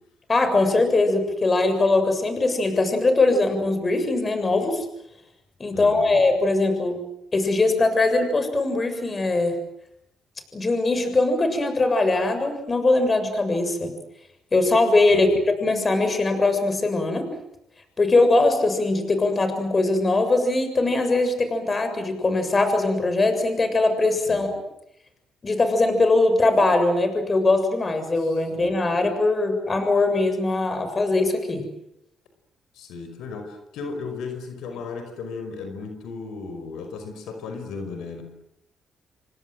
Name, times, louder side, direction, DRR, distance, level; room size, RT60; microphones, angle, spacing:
voice 1, 0.3-4.9 5.6-7.0 7.3-9.6 10.5-13.9 14.5-15.3 15.6-17.3 18.0-24.5 25.4-31.7, left 2 dB, 30° left, 8 dB, 7.2 m, -21 dB
voice 2, 5.7-6.2 15.1-15.4 24.3-24.5 28.1-28.8 32.7-38.2, left 4 dB, 85° left, 7 dB, 5.3 m, -36 dB
28.5 x 24.5 x 7.8 m, 0.79 s
cardioid pair, 90°, 0 cm